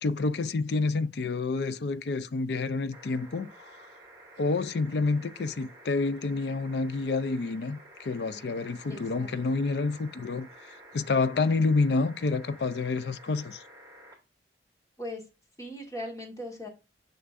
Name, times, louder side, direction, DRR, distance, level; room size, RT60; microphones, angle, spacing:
voice 1, 0.0-3.7 4.4-13.6, left 3 dB, 65° left, 0.4 m, -28 dB
sound 1, 2.9-14.2 15.6-15.7, right 1 dB, 20° right, 2.5 m, -51 dB
voice 2, 8.9-9.3 15.0-15.2 15.6-16.7, left 1 dB, 20° left, 1.5 m, -38 dB
6.7 x 5.7 x 2.5 m
head